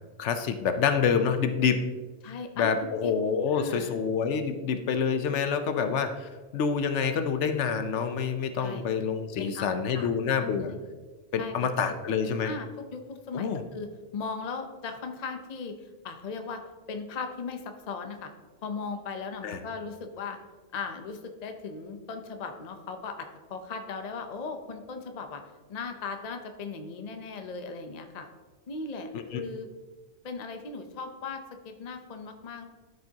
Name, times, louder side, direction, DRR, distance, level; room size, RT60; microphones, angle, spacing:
voice 1, 0.2-1.9 2.6-10.7 11.3-12.5 13.3-13.6 19.4-19.6 29.1-29.4, left 6 dB, 75° left, 8 dB, 0.9 m, -27 dB
voice 2, 2.2-3.1 3.5-4.0 8.6-8.8 9.4-10.1 10.4-10.8 11.4-11.7 12.4-16.6 16.9-18.3 18.6-20.4 20.7-25.4 25.7-28.3 28.7-29.7 30.2-32.7, left 4 dB, 40° left, 6 dB, 0.7 m, -38 dB
12.5 x 5.2 x 2.8 m, 1.3 s
omnidirectional pair, 1.2 m